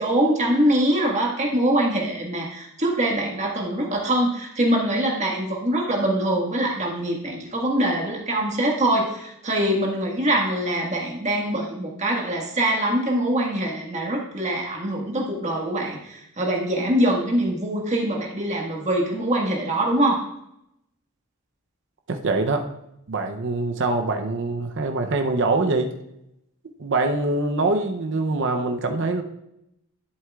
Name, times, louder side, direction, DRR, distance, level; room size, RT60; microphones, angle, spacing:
voice 1, 0.0-20.2, right 1 dB, 30° right, -1 dB, 1.5 m, -23 dB
voice 2, 22.1-22.7 23.1-25.9 26.8-29.2, right 3 dB, 55° right, 5 dB, 0.6 m, -24 dB
11.5 x 7.8 x 2.4 m, 0.82 s
head